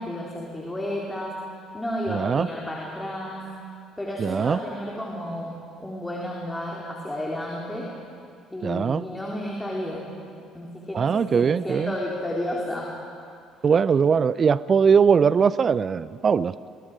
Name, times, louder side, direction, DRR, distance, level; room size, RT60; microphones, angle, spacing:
voice 1, 0.0-1.4 1.7-3.4 4.0-8.0 8.5-10.1 10.5-13.0, left 1 dB, 10° left, -3 dB, 3.8 m, -32 dB
voice 2, 2.1-2.5 4.2-4.6 8.6-9.0 10.9-11.9 13.6-16.5, right 6 dB, 40° right, 18 dB, 0.5 m, -20 dB
29.5 x 22.5 x 5.0 m, 2.3 s
figure-of-eight pair, 50°, 0 cm